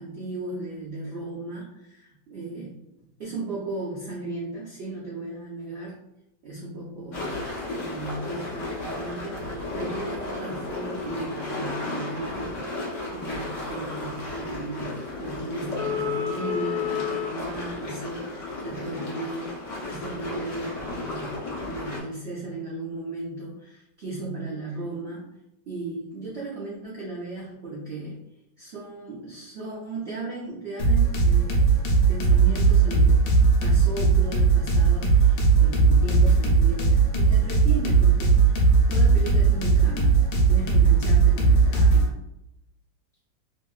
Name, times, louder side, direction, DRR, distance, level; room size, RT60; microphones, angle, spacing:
voice 1, 0.0-2.8 3.2-6.0 6.4-7.4 7.7-21.3 21.6-25.3 25.7-28.2 28.6-31.7 32.1-33.2 33.6-42.1, right 2 dB, 75° right, -6 dB, 0.6 m, -36 dB
sound 1, 7.1-22.0, left 3 dB, 50° left, 1.0 m, -33 dB
sound 2, 30.8-42.1, right 4 dB, 90° left, 1.4 m, -19 dB
3.0 x 2.7 x 2.4 m, 0.85 s
omnidirectional pair, 2.1 m